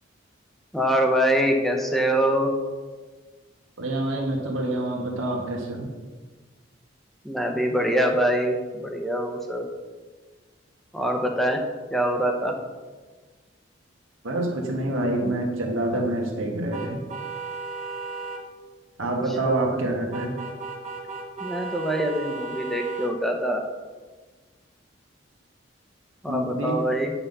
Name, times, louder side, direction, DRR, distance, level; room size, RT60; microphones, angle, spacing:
voice 1, 0.7-2.5 7.2-9.7 10.9-11.6 11.9-12.6 19.4-19.8 21.4-23.6 26.2-27.1, equal, ahead, 2 dB, 0.9 m, -24 dB
voice 2, 3.8-5.9 14.2-17.0 19.0-20.3 26.3-26.8, right 1 dB, 85° right, 0 dB, 1.5 m, -27 dB
sound 1, 16.7-18.4 20.1-23.1, right 4 dB, 35° right, 1.0 m, -35 dB
9.5 x 5.8 x 5.5 m, 1.4 s
head